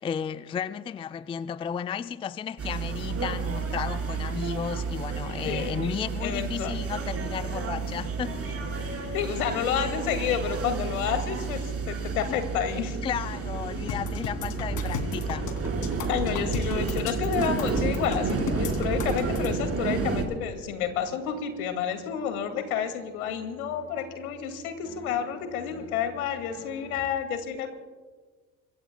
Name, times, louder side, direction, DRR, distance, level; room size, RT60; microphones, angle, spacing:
voice 1, 0.0-8.4 13.0-15.5, left 7 dB, 15° left, 0.4 m, -33 dB
sound 1, 2.6-20.2, right 4 dB, 35° right, 4.7 m, -31 dB
voice 2, 5.4-5.8 6.2-6.7 9.1-13.0 16.1-27.7, left 8 dB, 80° left, 2.4 m, -30 dB
sound 2, 8.2-27.1, left 5 dB, 30° left, 4.2 m, -48 dB
sound 3, 13.9-19.5, left 6 dB, 55° left, 2.9 m, -35 dB
26.0 x 22.5 x 2.3 m
hypercardioid pair, 70°, 43 cm